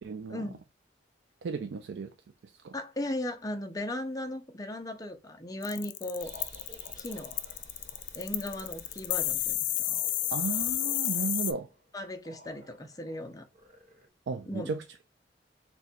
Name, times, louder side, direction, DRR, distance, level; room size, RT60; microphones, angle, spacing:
voice 1, 0.0-0.4 1.4-2.1 2.4-2.7 10.3-11.7 14.3-14.8, right 5 dB, 80° right, 0.4 m, -34 dB
voice 2, 2.7-6.3 7.0-7.4 8.1-10.0 11.9-13.5 14.5-14.8, left 1 dB, 20° left, 0.5 m, -37 dB
sound 1, 5.6-11.5, left 14 dB, 75° left, 0.4 m, -30 dB
sound 2, 6.2-14.1, equal, 40° right, 1.1 m, -53 dB
3.7 x 2.2 x 4.2 m
head